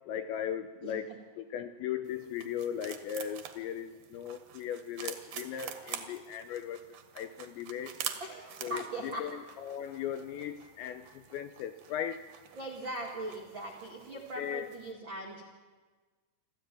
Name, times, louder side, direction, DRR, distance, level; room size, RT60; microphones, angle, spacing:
voice 1, 0.1-1.1 1.4-6.8 7.2-7.9 8.6-9.3 9.6-11.0 11.3-12.2 14.4-14.7, left 9 dB, 80° left, 9 dB, 2.6 m, -37 dB
voice 2, 0.8-1.2 8.2-9.3 12.5-15.4, right 1 dB, 85° right, 0 dB, 1.0 m, -40 dB
sound 1, 2.1-14.9, right 9 dB, 70° right, 2.1 m, -46 dB
26.5 x 14.0 x 9.1 m, 1.4 s
omnidirectional pair, 5.9 m